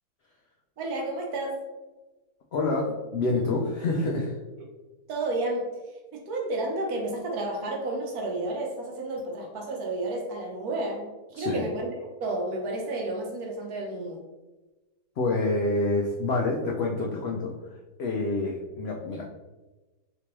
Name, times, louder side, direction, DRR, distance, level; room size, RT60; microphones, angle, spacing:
voice 1, 0.8-1.6 5.1-5.7 6.1-11.0 11.3-11.9 12.2-14.2, right 2 dB, 75° right, 0 dB, 1.2 m, -31 dB
voice 2, 2.5-4.4 11.3-11.6 15.2-17.5 18.0-19.2, left 2 dB, 75° left, -2 dB, 0.5 m, -27 dB
3.3 x 3.0 x 2.9 m, 1.1 s
omnidirectional pair, 1.6 m